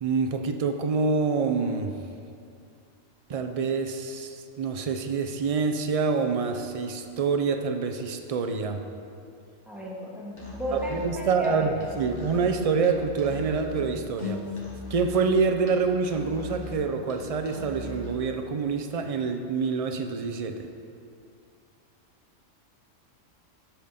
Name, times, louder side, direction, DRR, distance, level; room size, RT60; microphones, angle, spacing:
voice 1, 0.0-1.9 3.3-8.8 10.7-14.4 14.9-20.7, right 5 dB, 55° right, 6 dB, 0.4 m, -26 dB
voice 2, 9.7-11.7, equal, ahead, -5 dB, 1.5 m, -34 dB
Musical instrument, 10.3-18.3, left 1 dB, 65° left, 1.7 m, -39 dB
13.5 x 4.5 x 5.0 m, 2.5 s
omnidirectional pair, 1.3 m